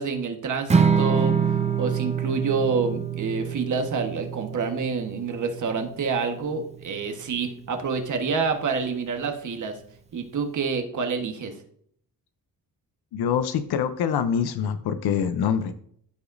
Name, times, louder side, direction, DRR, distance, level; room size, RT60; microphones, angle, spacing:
voice 1, 0.0-1.4 1.8-9.8 10.1-11.5, right 5 dB, 50° right, 5 dB, 1.3 m, -27 dB
Strum, 0.7-7.0, right 6 dB, 20° right, 0.5 m, -26 dB
voice 2, 13.1-15.7, left 8 dB, 90° left, 10 dB, 0.7 m, -25 dB
13.5 x 4.9 x 2.6 m, 0.64 s
cardioid pair, 125°, 37 cm